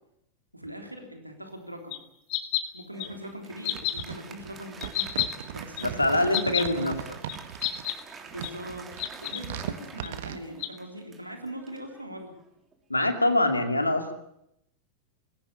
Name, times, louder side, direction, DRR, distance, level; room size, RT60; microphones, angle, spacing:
voice 1, 0.5-2.0 2.7-5.1 5.5-6.9 8.3-12.3, equal, 85° right, 4 dB, 3.4 m, -41 dB
sound 1, 1.9-2.0 2.3-2.6 3.0-3.1 3.6-4.0 4.8-5.3 5.8-5.9 6.3-6.6 7.3-7.4 7.6-7.9 8.4-8.5 9.0-9.4 10.0-10.1 10.6-10.7, left 16 dB, 45° left, 2.2 m, -29 dB
Applause, 2.9-12.7, right 5 dB, 20° right, 3.2 m, -47 dB
sound 2, 3.7-7.8 8.3-10.4, right 11 dB, 55° right, 1.4 m, -38 dB
voice 2, 5.8-7.0 12.9-14.1, left 1 dB, 85° left, 7 dB, 2.5 m, -24 dB
21.5 x 17.0 x 8.3 m, 0.77 s
figure-of-eight pair, 90°, 0 cm